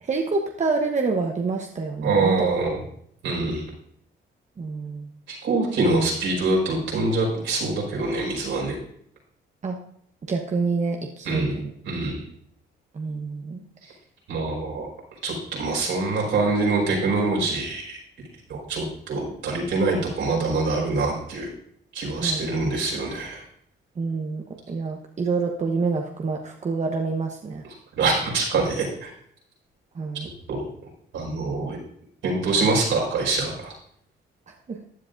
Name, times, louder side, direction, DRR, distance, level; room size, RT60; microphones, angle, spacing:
voice 1, 0.0-2.5 4.6-5.1 9.6-9.8 10.2-11.7 12.9-13.6 22.2-22.4 24.0-27.6 30.0-30.3 34.7-34.8, right 4 dB, 35° right, 2 dB, 1.1 m, -27 dB
voice 2, 2.0-2.8 3.2-3.6 5.3-8.8 11.2-11.6 11.8-12.2 14.3-14.9 15.2-18.0 18.5-21.5 21.9-23.4 27.6-29.1 30.5-30.6 31.1-31.8 32.2-33.7, right 3 dB, 80° right, -2 dB, 5.0 m, -24 dB
15.0 x 9.8 x 2.6 m, 0.67 s
cardioid pair, 90°, 20 cm